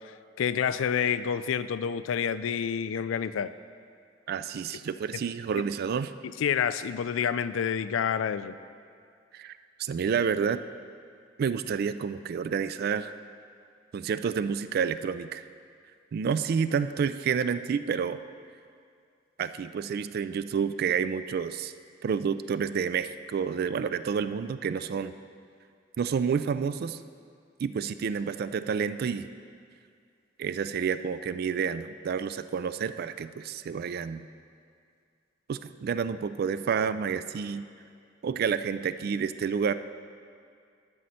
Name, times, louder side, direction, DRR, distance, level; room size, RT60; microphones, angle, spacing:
voice 1, 0.4-3.5 6.4-8.6, left 7 dB, 90° left, 13 dB, 0.3 m, -28 dB
voice 2, 4.3-6.1 9.3-10.6 11.4-13.1 13.9-15.4 16.1-18.2 19.4-21.7 22.0-25.1 26.0-27.0 27.6-29.3 30.4-34.3 35.5-37.7 38.2-39.7, right 6 dB, 55° right, 13 dB, 0.3 m, -29 dB
12.0 x 6.3 x 4.2 m, 2.3 s
head